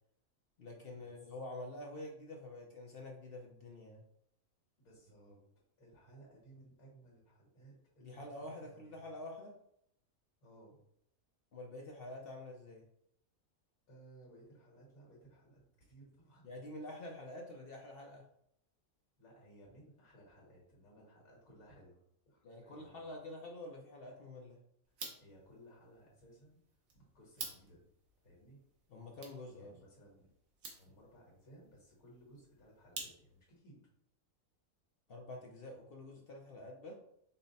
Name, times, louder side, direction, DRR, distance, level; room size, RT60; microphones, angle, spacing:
voice 1, 0.6-4.0 8.0-9.5 11.5-12.8 16.4-18.2 22.4-24.6 28.9-29.7 35.1-36.9, left 1 dB, 55° left, 0 dB, 0.7 m, -47 dB
voice 2, 4.8-5.4 5.8-9.0 10.4-10.8 13.9-15.6 15.9-16.7 19.2-23.1 25.2-26.6 26.9-27.8 28.2-28.6 29.5-30.3 30.8-33.8, right 1 dB, 80° left, -4 dB, 1.9 m, -60 dB
sound 1, 24.8-33.6, right 3 dB, 70° right, 1.3 m, -52 dB
5.5 x 2.1 x 3.9 m, 0.74 s
omnidirectional pair, 1.5 m